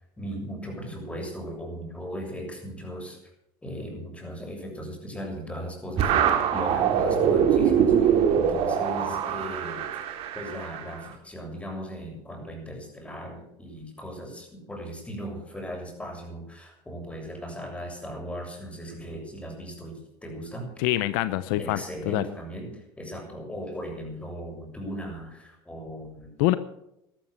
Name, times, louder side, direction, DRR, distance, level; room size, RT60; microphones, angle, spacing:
voice 1, 0.2-3.2 3.6-6.2 6.5-9.9 10.3-20.7 21.6-26.3, equal, 10° left, 1 dB, 7.2 m, -37 dB
sound 1, 6.0-11.0, right 8 dB, 60° right, 2.7 m, -23 dB
voice 2, 20.8-21.8 22.1-22.2 26.4-26.5, left 16 dB, 80° left, 14 dB, 0.8 m, -24 dB
13.5 x 13.0 x 6.7 m, 0.81 s
supercardioid pair, 95°, 11 cm